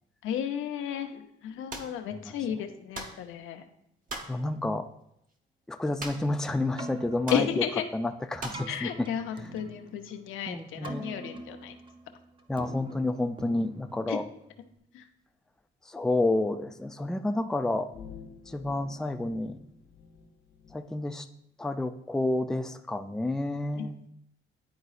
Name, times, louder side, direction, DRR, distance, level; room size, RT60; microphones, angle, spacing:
voice 1, 0.2-3.6 7.3-7.8 8.7-11.7 14.1-14.2 14.9-15.0 23.8-23.9, left 9 dB, 85° left, 6 dB, 0.6 m, -33 dB
sound 1, 1.7-2.0 2.9-3.2 4.1-4.4 6.0-6.4 6.7-6.8 7.3-7.5 8.4-8.7, right 2 dB, 40° right, 1.0 m, -39 dB
voice 2, 4.3-4.9 5.7-7.7 7.9-9.1 10.5-11.1 12.5-14.2 15.9-17.9 18.5-19.6 20.7-21.3 21.6-24.0, left 2 dB, 5° left, 6 dB, 0.4 m, -30 dB
Keyboard (musical), 6.6-14.8, right 2 dB, 25° right, 0.7 m, -44 dB
sound 2, 17.9-20.8, left 6 dB, 60° left, 0.9 m, -49 dB
10.5 x 3.9 x 2.4 m, 0.75 s
cardioid pair, 90°, 20 cm